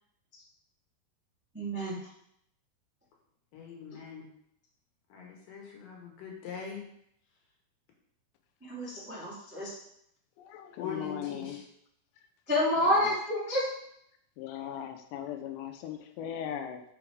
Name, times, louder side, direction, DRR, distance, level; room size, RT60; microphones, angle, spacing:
voice 1, 1.5-2.0 8.7-9.7 12.5-13.6, left 1 dB, 10° right, -8 dB, 0.6 m, -28 dB
voice 2, 3.5-4.3 5.1-6.9 10.7-11.6, left 6 dB, 65° left, -1 dB, 2.5 m, -43 dB
voice 3, 10.4-11.6 12.8-13.1 14.4-16.8, left 9 dB, 85° left, 7 dB, 2.8 m, -38 dB
6.1 x 4.8 x 4.5 m, 0.72 s
omnidirectional pair, 4.9 m